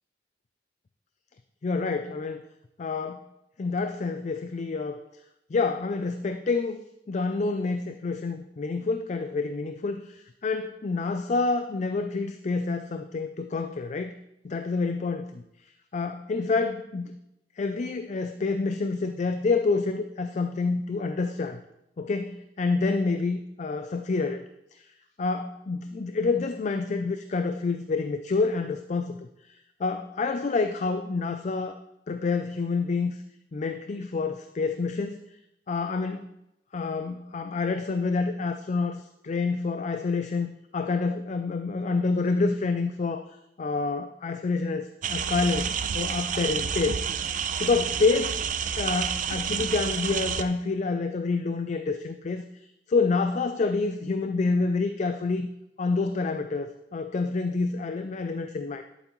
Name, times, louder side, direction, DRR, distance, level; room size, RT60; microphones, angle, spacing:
voice 1, 1.6-2.4 2.8-3.3 3.6-5.0 5.5-6.8 7.1-14.2 14.4-15.4 15.9-17.2 17.6-21.6 22.0-24.4 24.7-24.9 25.2-31.8 32.1-33.2 33.5-35.2 35.7-36.3 36.7-43.3 43.6-47.2 47.6-48.5 48.8-52.5 52.9-55.5 55.8-58.8, left 4 dB, 40° left, 8 dB, 0.4 m, -28 dB
sound 1, 45.0-50.4, right 7 dB, 45° right, 0.4 m, -29 dB
11.0 x 8.0 x 3.1 m, 0.86 s
head